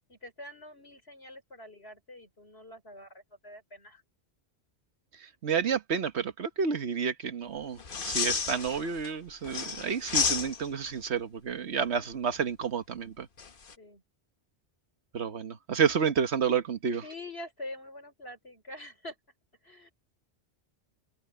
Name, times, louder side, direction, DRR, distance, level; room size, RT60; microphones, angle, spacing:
voice 1, 0.1-4.0 13.8-14.0 17.0-19.1 19.6-19.9, left 1 dB, 70° left, 5.7 m, -45 dB
voice 2, 5.2-13.3 15.1-17.0, right 6 dB, 90° right, 1.5 m, -30 dB
sound 1, 7.8-9.1 9.4-10.9 13.4-13.7, left 5 dB, 55° left, 1.3 m, -31 dB
omnidirectional pair, 1.1 m